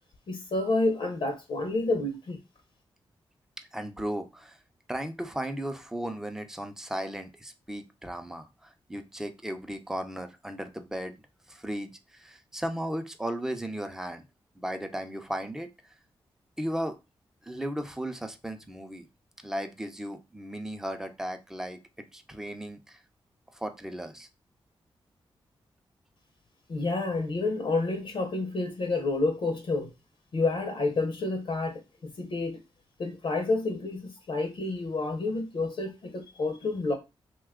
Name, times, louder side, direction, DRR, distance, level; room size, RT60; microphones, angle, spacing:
voice 1, 0.3-2.4 26.7-29.9 30.3-32.6 33.0-36.9, left 3 dB, 65° left, 0.7 m, -29 dB
voice 2, 3.7-4.6 4.9-11.2 11.5-14.2 14.6-15.7 16.6-17.0 17.4-19.1 19.4-21.8 22.1-23.0 23.5-24.3, right 1 dB, 5° right, 0.6 m, -35 dB
2.9 x 2.3 x 3.5 m
cardioid pair, 65°, 10 cm